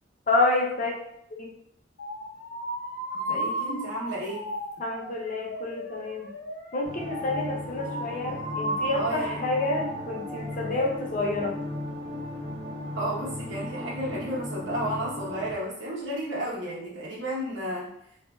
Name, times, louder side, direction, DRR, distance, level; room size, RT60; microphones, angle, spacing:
voice 1, 0.3-1.0 1.4-1.5 4.8-6.3 6.7-11.6, left 2 dB, 45° left, 0 dB, 0.5 m, -28 dB
sound 1, 2.0-10.9, equal, 85° left, 0.6 m, -35 dB
voice 2, 3.1-4.4 8.9-9.4 12.9-17.9, right 1 dB, 85° right, -5 dB, 1.0 m, -32 dB
sound 2, 6.8-15.5, left 1 dB, 45° right, 0.8 m, -36 dB
3.3 x 2.5 x 2.2 m, 0.73 s
head